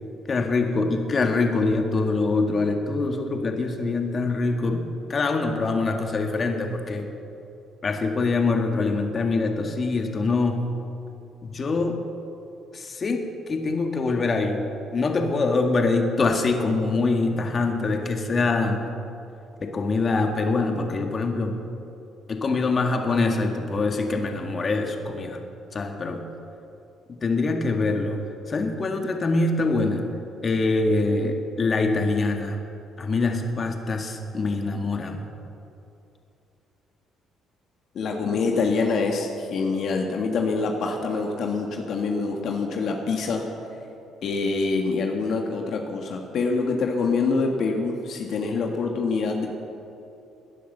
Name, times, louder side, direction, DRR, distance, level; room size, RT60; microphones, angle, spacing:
voice 1, 0.3-7.1 7.8-10.8 11.4-12.0 12.7-14.7 14.9-18.9 19.6-21.6 22.3-25.4 25.7-26.3 27.1-28.2 28.5-30.1 30.4-32.6 33.0-35.3 38.2-38.4, left 3 dB, 40° left, 4 dB, 1.9 m, -24 dB
voice 2, 37.9-43.5 44.2-49.5, left 4 dB, 65° left, 2 dB, 1.6 m, -25 dB
18.0 x 10.5 x 6.8 m, 2.7 s
supercardioid pair, 70°, 0 cm